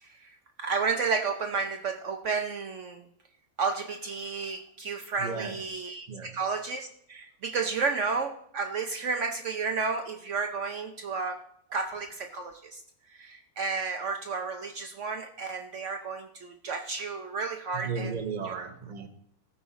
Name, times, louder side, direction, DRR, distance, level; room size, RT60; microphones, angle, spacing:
voice 1, 0.0-3.0 3.6-11.4 11.7-12.8 13.1-18.1 18.4-18.6, right 4 dB, 60° right, 1.0 m, -32 dB
voice 2, 5.2-5.6 6.1-6.4 17.7-19.1, right 5 dB, 35° right, 1.0 m, -35 dB
15.0 x 8.6 x 4.1 m
omnidirectional pair, 1.5 m